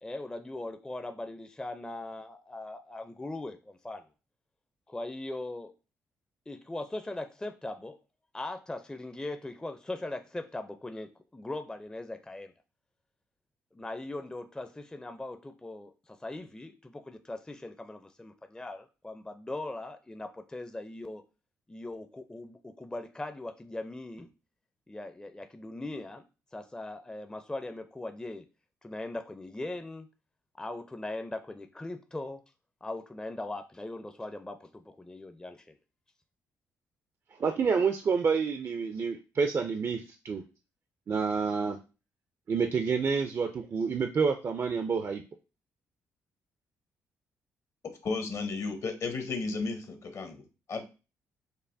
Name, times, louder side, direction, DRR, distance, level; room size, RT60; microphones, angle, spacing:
voice 1, 0.0-4.0 4.9-5.7 6.5-7.9 8.3-12.5 13.7-21.2 21.7-24.3 24.9-26.2 26.5-28.4 28.8-30.1 30.6-32.4 32.8-35.7, left 2 dB, 10° left, 8 dB, 0.4 m, -40 dB
voice 2, 37.4-40.4 41.1-41.8 42.5-45.2, right 5 dB, 45° right, 6 dB, 0.4 m, -28 dB
voice 3, 48.0-50.8, left 4 dB, 55° left, 7 dB, 0.8 m, -34 dB
5.3 x 2.2 x 2.6 m, 0.31 s
supercardioid pair, 55°, 6 cm